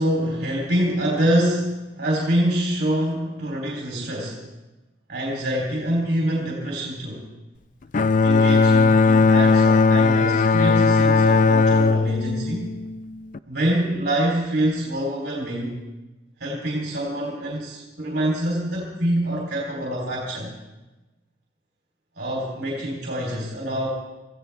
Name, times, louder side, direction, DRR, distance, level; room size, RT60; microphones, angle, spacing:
voice 1, 0.0-4.4 5.1-7.3 8.2-12.7 13.5-15.8 16.4-20.5 22.2-23.9, right 1 dB, 65° right, -2 dB, 3.4 m, -25 dB
Bowed string instrument, 7.9-13.4, left 4 dB, 45° left, 0.4 m, -17 dB
25.0 x 15.5 x 3.4 m, 1.1 s
head